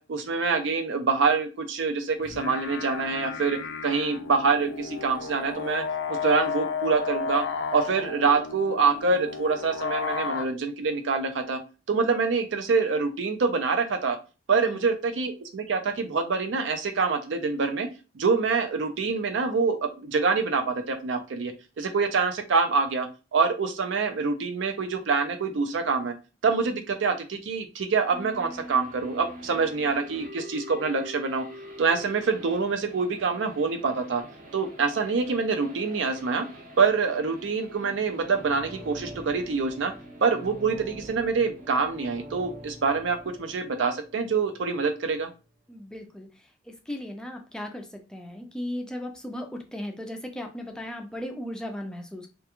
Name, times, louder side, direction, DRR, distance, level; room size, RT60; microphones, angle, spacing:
voice 1, 0.0-5.8 6.1-7.4 7.7-11.6 11.9-14.2 14.5-17.9 18.1-26.1 26.4-31.4 31.8-34.2 34.5-36.5 36.8-39.9 40.2-45.3, right 4 dB, 75° right, 7 dB, 0.5 m, -26 dB
sound 1, 2.2-10.4, left 5 dB, 80° left, 0.4 m, -33 dB
sound 2, 28.1-43.8, equal, 50° right, 0.7 m, -46 dB
sound 3, 38.1-44.9 45.2-45.3, right 1 dB, 15° right, 0.8 m, -46 dB
voice 2, 45.7-46.3 46.9-52.3, left 1 dB, 5° left, 3 dB, 0.3 m, -36 dB
2.3 x 2.2 x 2.9 m, 0.32 s
head